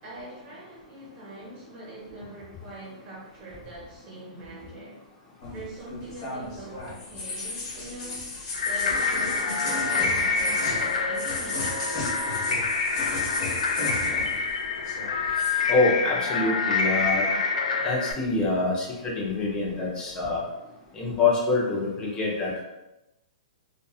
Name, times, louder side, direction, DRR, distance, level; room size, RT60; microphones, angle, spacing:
voice 1, 0.0-5.1 5.5-12.0, right 1 dB, 30° right, -6 dB, 1.2 m, -42 dB
sound 1, 5.4-14.5 14.8-15.6, left 2 dB, 45° left, 1.2 m, -35 dB
sound 2, 8.5-18.1, left 4 dB, 80° left, 0.4 m, -26 dB
voice 2, 15.7-17.4 17.8-20.5 20.9-22.6, left 3 dB, 20° left, -3 dB, 0.7 m, -26 dB
2.7 x 2.3 x 2.3 m, 0.93 s
hypercardioid pair, 145°, 4 cm